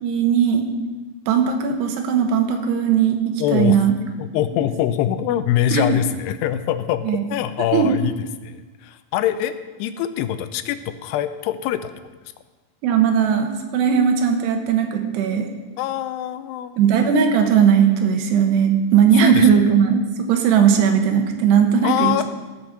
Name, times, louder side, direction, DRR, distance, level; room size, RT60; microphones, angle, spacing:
voice 1, 0.0-0.7 1.3-3.9 5.7-5.9 7.0-7.2 7.7-7.9 12.8-15.5 16.8-22.2, right 7 dB, 85° right, 4 dB, 3.3 m, -18 dB
voice 2, 3.4-3.8 4.2-9.5 9.8-11.9 15.8-16.8 19.1-19.6 21.8-22.2, left 11 dB, 90° left, 11 dB, 2.7 m, -24 dB
16.5 x 6.1 x 6.6 m, 1.3 s
omnidirectional pair, 4.7 m